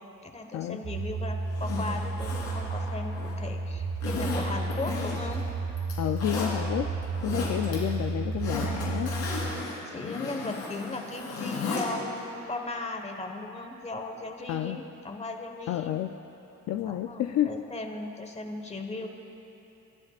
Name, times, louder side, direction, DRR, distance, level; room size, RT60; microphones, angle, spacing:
voice 1, 0.2-5.4 7.3-7.7 9.9-16.0 16.8-19.1, left 2 dB, 20° left, 4 dB, 1.3 m, -37 dB
sound 1, 0.8-9.5, right 3 dB, 45° right, 1.5 m, -32 dB
Zipper (clothing), 1.5-3.4 4.0-5.4 5.8-6.5 7.0-7.8 8.1-11.9 12.2-12.3, left 4 dB, 90° left, 3.6 m, -35 dB
voice 2, 6.0-6.9 7.2-9.1 14.5-14.8 15.7-16.2 16.7-17.6, left 11 dB, 60° left, 6 dB, 0.5 m, -30 dB
27.5 x 11.5 x 2.5 m, 2.9 s
cardioid pair, 90°, 30 cm